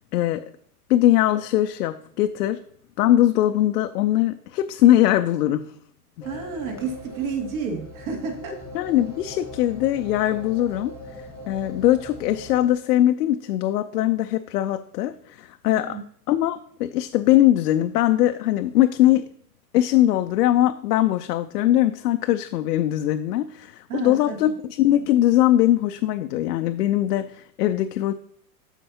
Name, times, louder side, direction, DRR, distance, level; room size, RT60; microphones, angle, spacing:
voice 1, 0.1-0.4 0.9-2.6 3.0-5.7 6.2-6.3 8.7-16.0 16.3-19.3 19.7-28.1, left 13 dB, 80° left, 8 dB, 0.6 m, -21 dB
sound 1, 6.2-12.7, left 1 dB, 5° right, 1.2 m, -40 dB
voice 2, 6.2-8.6 15.7-16.0 23.9-24.4, right 5 dB, 65° right, 1 dB, 2.4 m, -30 dB
13.0 x 4.5 x 2.8 m, 0.66 s
supercardioid pair, 150°, 47 cm